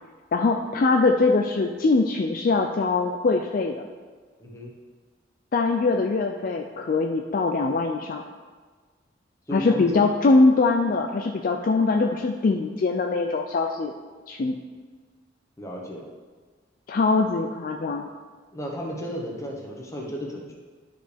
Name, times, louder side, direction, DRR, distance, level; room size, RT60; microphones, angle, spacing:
voice 1, 0.3-3.8 5.5-8.2 9.5-13.9 14.3-14.6 16.9-18.1, left 3 dB, 45° left, 3 dB, 0.4 m, -22 dB
voice 2, 4.4-4.7 9.5-10.3 15.6-16.1 18.5-20.5, equal, 15° left, -1 dB, 1.1 m, -34 dB
11.0 x 5.0 x 3.4 m, 1.5 s
head